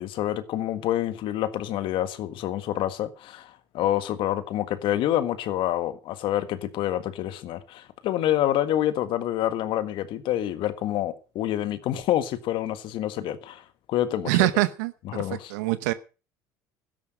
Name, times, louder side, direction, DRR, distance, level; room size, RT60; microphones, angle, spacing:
voice 1, 0.0-13.6 13.9-14.5 15.1-15.5, left 12 dB, 60° left, 1.6 m, -27 dB
voice 2, 14.3-15.9, right 18 dB, 80° right, 0.9 m, -25 dB
12.5 x 10.5 x 6.5 m
hypercardioid pair, 75°, 9 cm